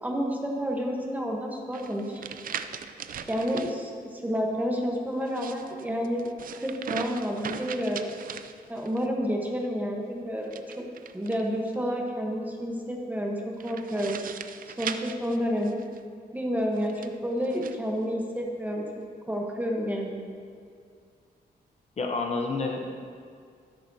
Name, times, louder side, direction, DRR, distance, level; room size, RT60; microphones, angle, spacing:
voice 1, 0.0-2.2 3.3-6.3 6.6-8.1 8.7-10.9 11.1-14.2 14.8-15.8 16.3-18.9 19.3-20.2, equal, 10° right, 0 dB, 1.1 m, -30 dB
sound 1, 1.7-3.7 5.2-9.1 10.4-11.8 13.6-16.0 16.8-17.8, right 7 dB, 55° right, 0.4 m, -39 dB
voice 2, 22.0-23.1, left 3 dB, 40° left, 2 dB, 0.8 m, -30 dB
12.5 x 10.5 x 2.8 m, 2.2 s
wide cardioid pair, 150°, 17 cm